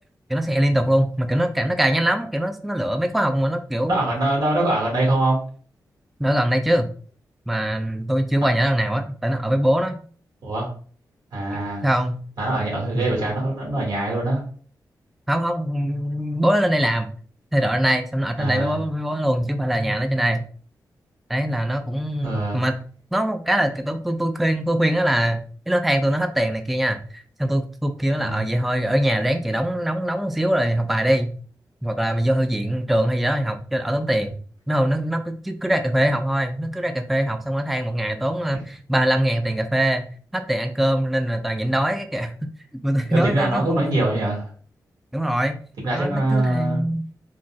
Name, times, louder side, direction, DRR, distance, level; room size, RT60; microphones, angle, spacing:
voice 1, 0.3-4.0 6.2-6.9 7.5-10.0 11.8-12.2 12.9-13.1 15.3-17.1 17.5-20.5 21.3-22.7 23.1-31.3 31.8-34.3 34.7-40.1 40.3-42.3 42.8-43.8 45.1-45.5 45.9-47.0, right 1 dB, ahead, 7 dB, 0.3 m, -22 dB
voice 2, 3.8-5.4 10.4-10.7 11.3-11.9 12.4-14.4 18.4-18.8 22.2-22.6 28.2-28.5 43.1-44.5 45.8-46.8, right 1 dB, 75° right, -2 dB, 1.5 m, -23 dB
3.9 x 2.3 x 2.3 m, 0.43 s
cardioid pair, 90°, 7 cm